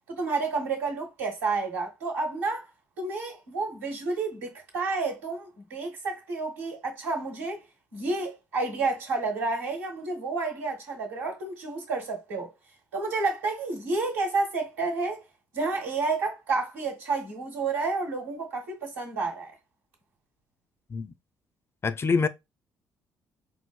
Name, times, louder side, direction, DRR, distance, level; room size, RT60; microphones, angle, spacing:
voice 1, 0.1-2.7 3.0-7.6 7.9-12.5 12.9-15.2 15.5-19.5, right 3 dB, 90° right, 1.1 m, -30 dB
voice 2, 21.8-22.3, left 4 dB, 30° left, 0.4 m, -25 dB
4.6 x 2.0 x 2.3 m
hypercardioid pair, 50°, 8 cm